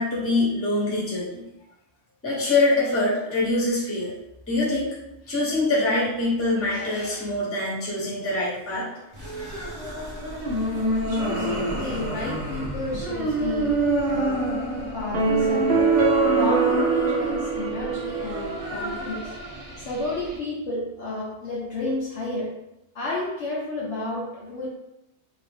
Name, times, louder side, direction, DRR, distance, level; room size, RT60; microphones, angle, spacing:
voice 1, 0.0-1.4 2.2-4.1 4.5-4.9 5.3-9.6, left 2 dB, 10° left, -7 dB, 0.8 m, -24 dB
sound 1, 9.1-20.4, right 1 dB, 30° right, 0.8 m, -28 dB
voice 2, 11.1-14.5 14.9-22.5 22.9-24.7, left 2 dB, 65° left, -4 dB, 0.9 m, -31 dB
sound 2, 15.1-18.6, right 4 dB, 65° right, 0.7 m, -23 dB
2.6 x 2.5 x 3.4 m, 0.90 s
omnidirectional pair, 1.4 m